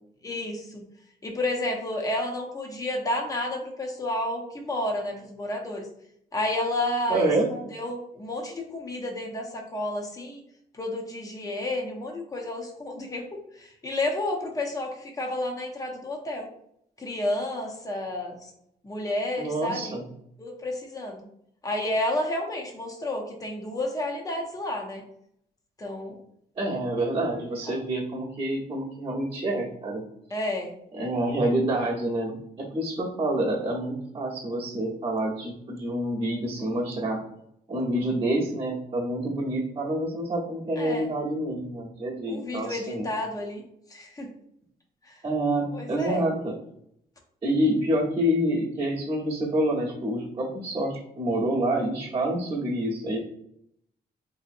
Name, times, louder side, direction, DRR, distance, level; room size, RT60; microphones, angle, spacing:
voice 1, 0.2-0.8 1.2-5.9 6.3-10.4 10.7-16.5 17.0-18.4 18.8-20.0 20.4-21.2 21.6-25.0 25.8-26.2 27.7-27.8 30.3-30.7 40.8-41.1 42.3-43.6 43.9-44.3 45.1-45.2 45.7-46.2, left 1 dB, 20° left, 1 dB, 0.6 m, -31 dB
voice 2, 7.1-7.5 19.4-20.0 26.6-30.0 30.9-37.2 37.7-43.1 45.2-46.5 47.4-53.2, right 1 dB, 30° right, -9 dB, 0.8 m, -27 dB
3.6 x 2.7 x 2.5 m, 0.72 s
wide cardioid pair, 150°, 17 cm